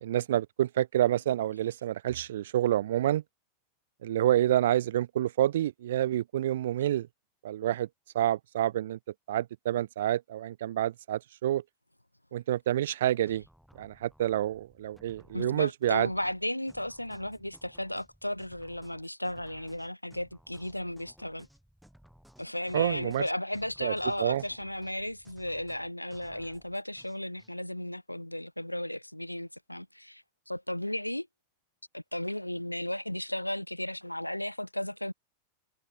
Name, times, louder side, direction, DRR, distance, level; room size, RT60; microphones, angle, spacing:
voice 1, 0.0-3.2 4.0-7.1 7.4-7.9 8.1-9.0 9.3-11.6 12.3-13.4 13.8-16.1 22.7-23.2 23.8-23.9 24.2-24.4, right 12 dB, 60° right, 0.4 m, -28 dB
sound 1, 13.3-27.5, equal, ahead, 6.5 m, -59 dB
voice 2, 15.3-21.5 22.4-31.3 31.9-35.1, left 1 dB, 85° left, 1.3 m, -35 dB
figure-of-eight pair, 90°, 0 cm